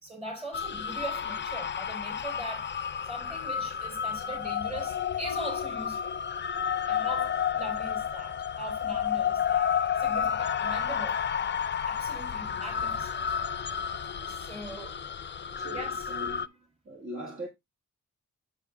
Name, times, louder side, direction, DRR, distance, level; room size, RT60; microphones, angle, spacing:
voice 1, 0.0-2.7 3.1-6.1 6.9-9.7 10.0-11.2 11.9-13.4 14.3-15.0 15.7-16.4, right 1 dB, 20° right, 4.2 m, -41 dB
worlun owls, 0.5-16.5, left 8 dB, 35° left, 0.4 m, -31 dB
voice 2, 15.5-16.5 16.8-17.5, right 1 dB, 40° right, 1.6 m, -41 dB
7.6 x 7.4 x 2.2 m
wide cardioid pair, 115°, 31 cm